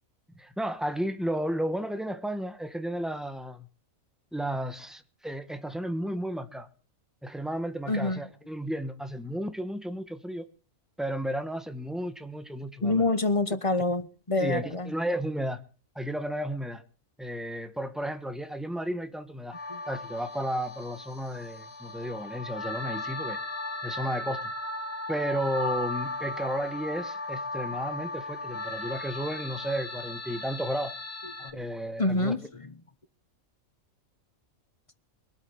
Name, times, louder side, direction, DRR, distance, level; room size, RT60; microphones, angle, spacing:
voice 1, 0.3-3.7 4.3-6.7 7.2-10.5 11.0-13.0 14.4-15.6 15.9-16.8 17.2-19.6 19.9-23.4 23.8-24.5 25.1-30.9 31.5-32.3, equal, ahead, 1.3 m, -33 dB
voice 2, 7.9-8.2 12.8-14.9 19.7-19.8 31.4-31.6 32.0-32.7, left 2 dB, 25° left, 0.9 m, -27 dB
sound 1, 19.5-31.5, left 2 dB, 50° left, 2.1 m, -36 dB
22.0 x 8.2 x 7.1 m
omnidirectional pair, 1.4 m